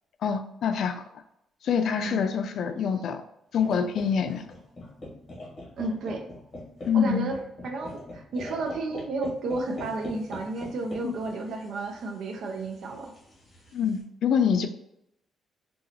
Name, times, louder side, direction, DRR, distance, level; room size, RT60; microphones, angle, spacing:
voice 1, 0.2-1.0 1.6-3.2 3.5-4.5 6.9-7.3 11.0-11.1 13.7-14.7, left 7 dB, 65° left, 8 dB, 0.3 m, -25 dB
sound 1, 3.5-14.0, left 1 dB, 30° left, 1.2 m, -43 dB
voice 2, 5.8-6.3 6.9-7.4 7.6-13.1, right 2 dB, 70° right, 3 dB, 0.6 m, -32 dB
3.8 x 2.3 x 2.8 m, 0.80 s
cardioid pair, 115°, 0 cm